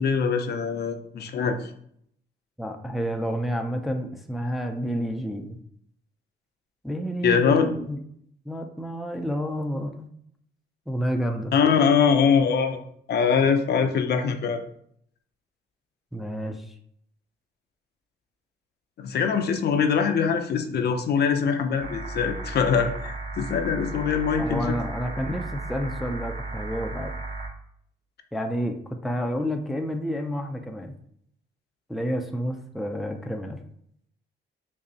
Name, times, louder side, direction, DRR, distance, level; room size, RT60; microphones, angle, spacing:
voice 1, 0.0-1.7 7.2-7.7 11.5-12.8 13.1-14.6 19.0-24.7, left 6 dB, 55° left, 7 dB, 0.5 m, -23 dB
voice 2, 2.6-5.6 6.8-8.0 8.5-10.1 10.9-11.5 16.1-16.6 24.4-27.1 28.3-30.9 31.9-33.6, equal, ahead, 4 dB, 0.4 m, -30 dB
sound 1, 21.8-27.5, right 2 dB, 30° right, 0.8 m, -35 dB
5.2 x 2.0 x 2.7 m, 0.67 s
cardioid pair, 90°, 20 cm